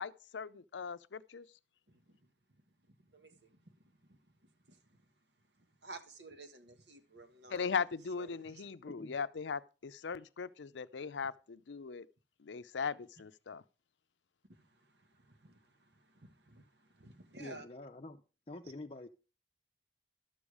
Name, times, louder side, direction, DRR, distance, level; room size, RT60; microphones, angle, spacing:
voice 1, 0.0-1.5 7.5-12.1 12.4-13.6, left 5 dB, 90° left, 0.5 m, -39 dB
voice 2, 1.9-2.2 2.9-5.0 5.6-7.7 8.2-8.7 14.5-17.6, right 2 dB, 70° right, 1.6 m, -55 dB
voice 3, 17.4-18.2 18.5-19.1, left 2 dB, 35° left, 0.6 m, -47 dB
12.0 x 7.1 x 4.9 m
head